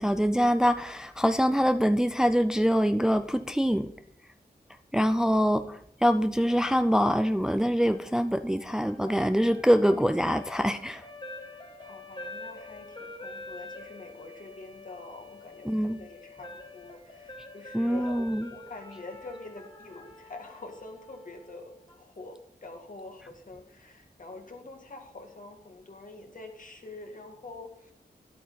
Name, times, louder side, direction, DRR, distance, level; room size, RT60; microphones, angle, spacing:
voice 1, 0.0-3.9 4.9-11.0 15.7-16.0 17.7-18.5, equal, 5° right, 10 dB, 0.4 m, -24 dB
sound 1, 7.9-22.0, left 2 dB, 30° left, 1.5 m, -46 dB
voice 2, 11.8-27.9, left 2 dB, 50° left, 3 dB, 1.9 m, -46 dB
11.0 x 8.5 x 4.0 m, 0.73 s
wide cardioid pair, 75°, 17 cm